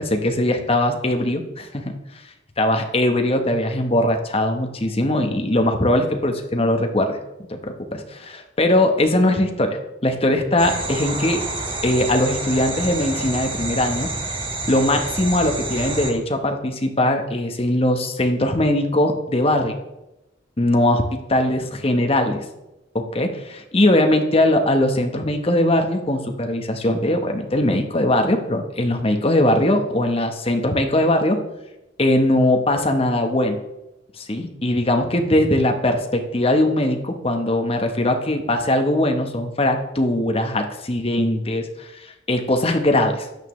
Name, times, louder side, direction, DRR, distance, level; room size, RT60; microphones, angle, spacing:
voice 1, 0.0-1.9 2.6-7.2 7.5-11.4 11.8-14.1 14.7-19.8 20.6-22.4 22.9-31.4 32.0-33.6 34.2-43.3, left 1 dB, 30° left, 5 dB, 1.0 m, -20 dB
sound 1, 10.6-16.1, right 2 dB, 25° right, 1.5 m, -28 dB
13.0 x 9.0 x 3.2 m, 0.94 s
head